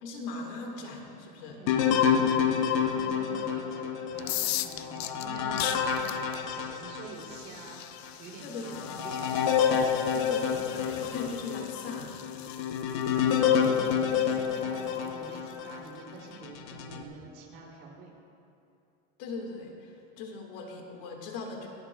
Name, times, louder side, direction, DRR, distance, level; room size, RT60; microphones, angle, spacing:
voice 1, 0.0-1.6 8.4-9.0 10.1-12.2 19.2-21.7, left 3 dB, 60° left, 2 dB, 1.7 m, -40 dB
voice 2, 1.5-7.8 8.2-9.6 13.1-18.1, right 4 dB, 40° right, -3 dB, 2.7 m, -47 dB
sound 1, 1.7-7.4 8.0-8.1 8.6-15.8 16.4-17.0, left 7 dB, 45° left, 0.8 m, -28 dB
sound 2, 4.1-15.9, left 14 dB, 85° left, 0.6 m, -40 dB
27.5 x 9.5 x 2.2 m, 2.7 s
supercardioid pair, 175°, 31 cm